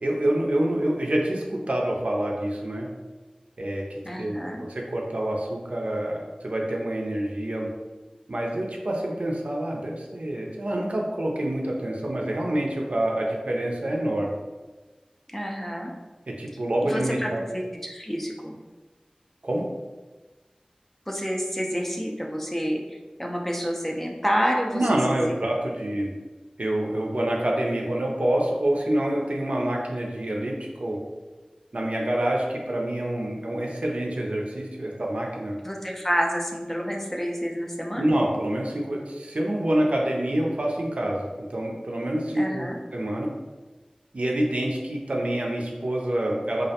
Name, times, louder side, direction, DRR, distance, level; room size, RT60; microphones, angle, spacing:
voice 1, 0.0-2.9 3.6-7.7 8.3-14.4 16.3-17.4 19.4-19.6 24.7-26.1 26.6-31.0 31.7-35.6 38.0-43.3 44.1-46.7, right 1 dB, 65° right, -1 dB, 0.4 m, -27 dB
voice 2, 4.0-4.6 15.3-15.9 16.8-18.5 21.1-24.8 25.1-25.3 35.6-38.2 42.4-42.8, equal, 10° left, 0 dB, 0.4 m, -29 dB
2.3 x 2.1 x 2.7 m, 1.2 s
wide cardioid pair, 45°, 2 cm